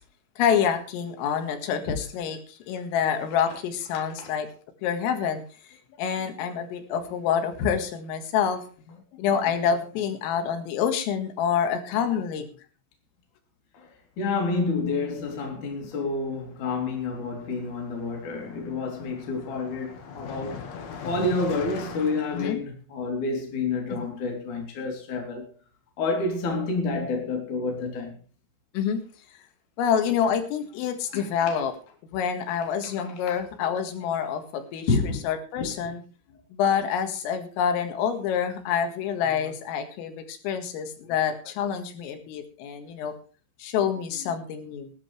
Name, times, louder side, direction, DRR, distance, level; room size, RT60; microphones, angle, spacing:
voice 1, 0.4-4.5 4.8-5.4 5.7-12.5 22.3-22.6 28.7-29.0 29.8-31.7 32.1-36.0 36.5-43.1 43.6-44.9, left 8 dB, 90° left, 4.4 m, -27 dB
voice 2, 13.7-20.6 21.0-25.5 26.0-28.2 31.1-31.6 33.0-33.4 34.9-35.3 35.6-35.7, left 3 dB, 40° left, 4.4 m, -29 dB
Car passing by, 15.0-15.3 15.5-22.5, left 6 dB, 60° left, 1.8 m, -42 dB
19.5 x 12.0 x 3.4 m
omnidirectional pair, 5.8 m